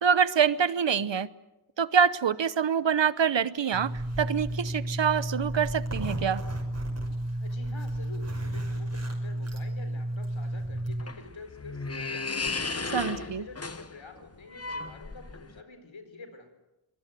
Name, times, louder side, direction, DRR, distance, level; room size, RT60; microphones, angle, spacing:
voice 1, 0.0-1.3 1.8-6.4 12.9-13.4, right 7 dB, 65° right, 16 dB, 1.0 m, -25 dB
Zipper (clothing), 3.7-11.0, right 1 dB, 30° right, 6.0 m, -32 dB
voice 2, 7.4-16.6, left 3 dB, 70° left, 8 dB, 4.4 m, -48 dB
sound 1, 10.6-15.6, left 3 dB, 30° left, 1.2 m, -35 dB
23.5 x 20.5 x 9.2 m, 0.95 s
wide cardioid pair, 80°, 47 cm